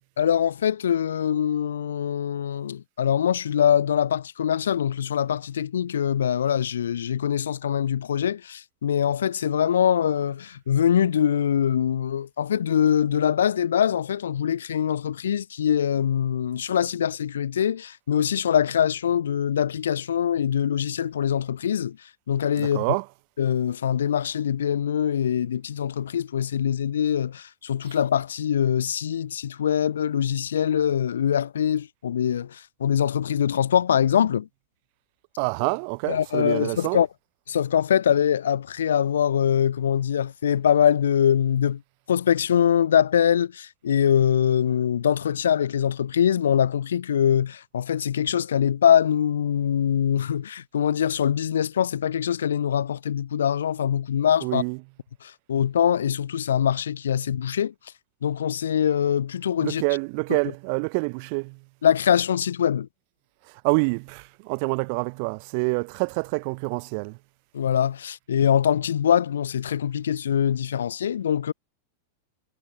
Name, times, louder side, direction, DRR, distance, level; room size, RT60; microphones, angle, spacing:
voice 1, 0.2-22.0 22.3-22.8 23.4-34.5 36.1-37.1 37.5-41.8 42.1-54.6 55.2-57.7 58.2-59.8 61.8-62.9 67.5-71.5, left 9 dB, 65° left, 0.7 m, -23 dB
voice 2, 22.6-23.0 35.4-37.0 54.4-54.8 59.6-61.6 63.6-67.2, right 35 dB, 45° right, 0.7 m, -27 dB
figure-of-eight pair, 90°, 0 cm